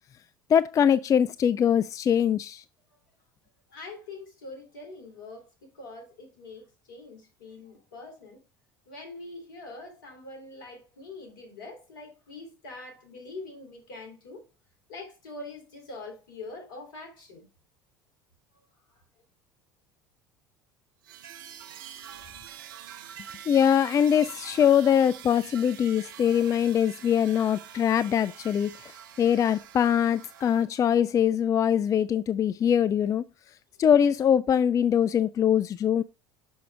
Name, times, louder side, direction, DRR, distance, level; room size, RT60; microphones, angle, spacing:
voice 1, 0.5-2.6 23.5-28.9 29.2-33.2 33.8-36.0, left 8 dB, 30° left, 0.4 m, -23 dB
voice 2, 3.7-8.4 8.9-14.4 14.9-17.5 18.9-19.0, left 2 dB, 75° left, 2.7 m, -44 dB
sound 1, 21.0-30.7, right 9 dB, 70° right, 0.6 m, -45 dB
6.2 x 6.1 x 3.3 m
figure-of-eight pair, 70°, 11 cm